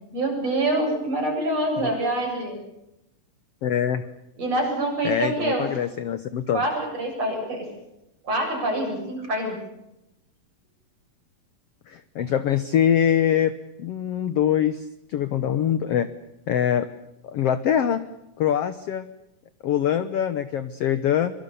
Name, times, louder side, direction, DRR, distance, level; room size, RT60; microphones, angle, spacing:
voice 1, 0.1-2.6 4.4-5.7 6.5-7.7 8.2-9.6, right 1 dB, 45° right, 1 dB, 8.9 m, -25 dB
voice 2, 3.6-4.0 5.0-6.6 11.9-13.5 13.8-16.1 16.5-16.9 17.2-18.0 18.4-19.0 19.6-21.3, left 9 dB, 70° left, 12 dB, 1.5 m, -23 dB
25.0 x 24.0 x 7.0 m, 0.88 s
omnidirectional pair, 4.0 m